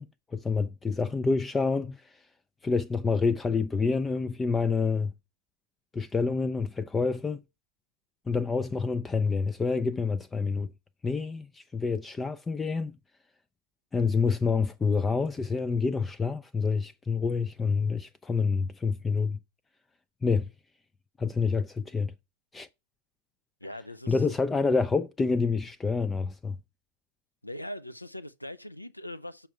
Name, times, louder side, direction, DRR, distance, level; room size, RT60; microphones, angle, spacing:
voice 1, 0.0-2.3 2.6-5.1 5.9-7.4 8.3-10.7 11.0-13.0 13.9-19.4 20.2-20.5 21.2-22.1 22.5-22.7 24.1-26.6, left 4 dB, 15° left, 0.3 m, -27 dB
voice 2, 23.6-24.2 27.4-29.5, left 1 dB, 85° left, 0.5 m, -41 dB
6.8 x 5.7 x 4.6 m
figure-of-eight pair, 90°, 0 cm